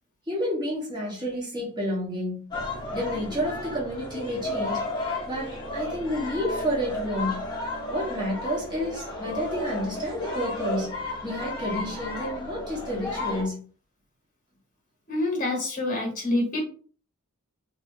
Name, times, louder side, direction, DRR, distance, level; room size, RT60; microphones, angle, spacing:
voice 1, 0.3-2.5 2.9-4.8 5.3-7.5 7.9-10.9 11.2-13.6, equal, 20° right, -5 dB, 1.2 m, -30 dB
sound 1, 2.5-13.4, left 2 dB, 20° left, 1.0 m, -33 dB
voice 2, 15.1-16.6, left 2 dB, 35° left, 0 dB, 1.2 m, -26 dB
3.2 x 2.7 x 2.7 m, 0.43 s
head